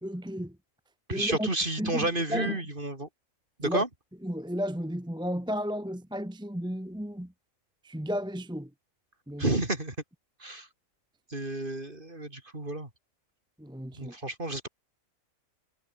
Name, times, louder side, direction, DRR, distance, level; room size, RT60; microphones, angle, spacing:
voice 1, 0.0-0.6 1.1-1.5 1.8-2.6 3.6-3.8 4.2-7.3 7.8-8.7 9.3-9.6 13.6-14.1, equal, 5° right, 1.1 m, -33 dB
voice 2, 1.1-3.1 3.6-3.9 9.4-9.9 10.4-10.7 11.3-12.9 14.0-14.7, right 2 dB, 35° right, 4.5 m, -31 dB
omnidirectional pair, 1.4 m